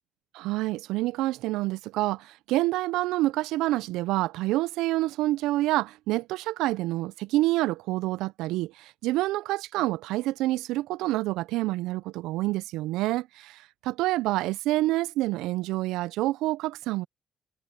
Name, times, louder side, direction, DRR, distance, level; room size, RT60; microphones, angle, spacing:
voice 1, 0.3-17.1, right 17 dB, 90° right, 0.3 m, -27 dB
supercardioid pair, 65°, 0 cm